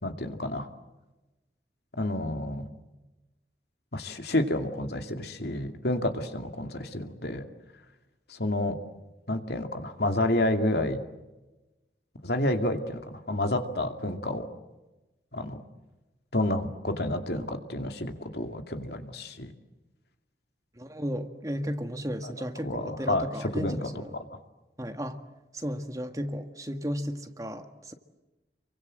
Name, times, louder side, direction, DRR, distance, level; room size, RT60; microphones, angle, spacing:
voice 1, 0.0-0.7 2.0-2.7 3.9-7.4 8.3-8.8 9.3-11.0 12.2-14.5 15.3-15.6 16.3-19.5 22.2-22.3 22.6-24.2, left 1 dB, 70° left, 6 dB, 2.5 m, -30 dB
voice 2, 20.8-24.2 24.8-25.2 25.5-27.9, equal, 20° right, 7 dB, 1.6 m, -34 dB
30.0 x 24.0 x 7.7 m, 1.1 s
head